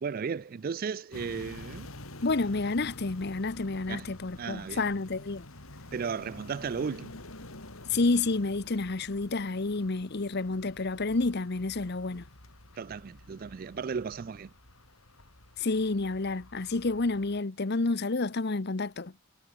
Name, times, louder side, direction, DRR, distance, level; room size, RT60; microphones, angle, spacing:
voice 1, 0.0-1.9 3.9-4.1 4.4-4.8 5.9-7.1 12.8-14.5, right 6 dB, 45° right, 0.4 m, -35 dB
sound 1, 1.1-17.4, left 1 dB, 80° left, 4.5 m, -49 dB
voice 2, 2.2-5.5 7.9-12.2 15.6-19.1, left 3 dB, 50° left, 0.9 m, -29 dB
head